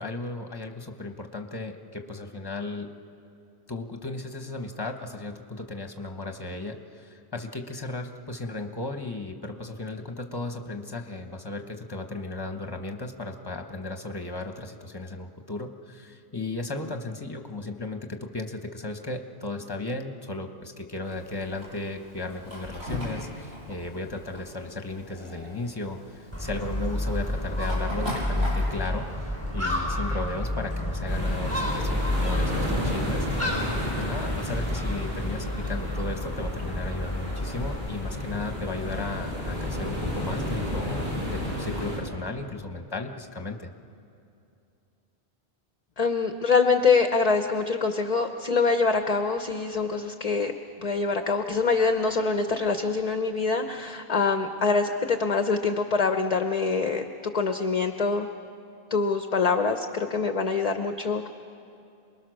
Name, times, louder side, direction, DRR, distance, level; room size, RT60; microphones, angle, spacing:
voice 1, 0.0-2.9 3.7-41.1 41.3-43.7, left 2 dB, 20° left, 5 dB, 1.2 m, -35 dB
Fire, 21.0-28.9, equal, 75° right, 7.4 m, -39 dB
Gull seagull, 26.3-37.8, left 1 dB, 15° right, 3.8 m, -30 dB
sound 1, 31.1-42.0, left 1 dB, 50° right, 6.1 m, -32 dB
voice 2, 46.0-50.5 50.8-57.0 57.3-58.3 58.9-61.3, left 4 dB, 40° left, 7 dB, 0.8 m, -24 dB
28.0 x 21.0 x 6.4 m, 2.7 s
omnidirectional pair, 1.1 m